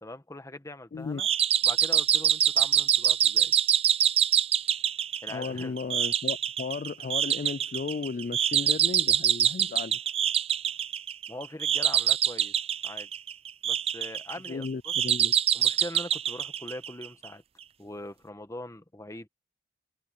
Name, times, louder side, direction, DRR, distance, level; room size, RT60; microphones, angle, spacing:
voice 1, 0.0-1.3 1.6-3.5 5.2-5.8 11.3-12.5 12.8-13.1 13.6-14.9 15.5-17.4 17.8-19.3, left 1 dB, 15° left, 1.3 m, -42 dB
voice 2, 0.9-1.2 5.3-10.0 14.5-15.3, left 4 dB, 40° left, 0.3 m, -35 dB
sound 1, 1.2-17.3, right 9 dB, 30° right, 0.4 m, -25 dB
head